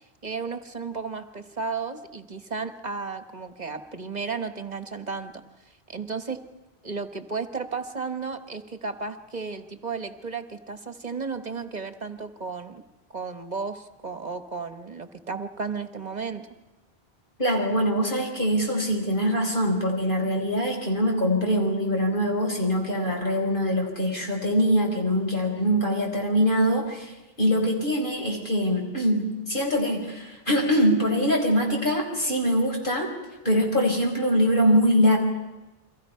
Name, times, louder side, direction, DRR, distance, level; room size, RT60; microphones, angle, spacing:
voice 1, 0.2-5.4 5.9-6.4 6.8-12.8 13.1-16.5, right 4 dB, 45° right, 9 dB, 1.3 m, -34 dB
voice 2, 17.4-33.1 33.4-35.2, equal, 55° left, 1 dB, 4.7 m, -23 dB
30.0 x 23.0 x 5.7 m, 1.1 s
omnidirectional pair, 1.0 m